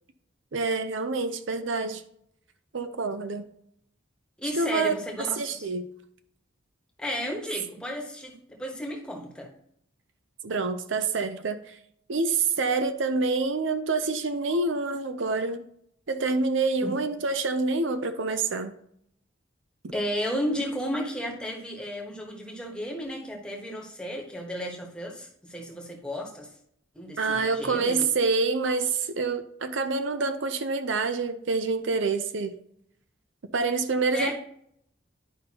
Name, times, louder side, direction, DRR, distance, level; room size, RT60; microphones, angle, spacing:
voice 1, 0.5-2.0 2.7-3.5 4.5-4.9 5.4-5.9 10.4-11.8 12.1-15.6 16.1-18.8 27.2-32.5 33.5-34.3, right 3 dB, 70° right, 9 dB, 0.6 m, -27 dB
voice 2, 4.4-5.7 7.0-9.5 16.8-16.9 19.9-26.5 26.9-28.1 34.1-34.3, equal, 5° left, -1 dB, 1.2 m, -33 dB
10.5 x 5.3 x 2.9 m, 0.70 s
head